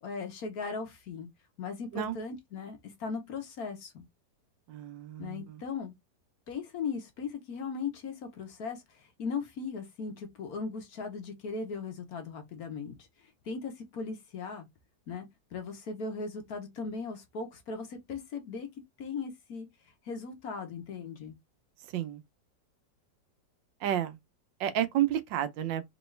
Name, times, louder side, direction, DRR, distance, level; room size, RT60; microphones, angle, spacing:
voice 1, 0.0-1.3 1.6-4.0 5.2-5.9 6.5-13.1 13.4-14.7 15.1-15.3 15.5-18.7 19.0-19.7 20.0-21.4, left 5 dB, 60° left, 1.3 m, -38 dB
voice 2, 4.7-5.6 21.9-22.2 23.8-24.2 24.6-25.8, right 11 dB, 85° right, 1.4 m, -31 dB
3.8 x 3.0 x 3.1 m
omnidirectional pair, 2.0 m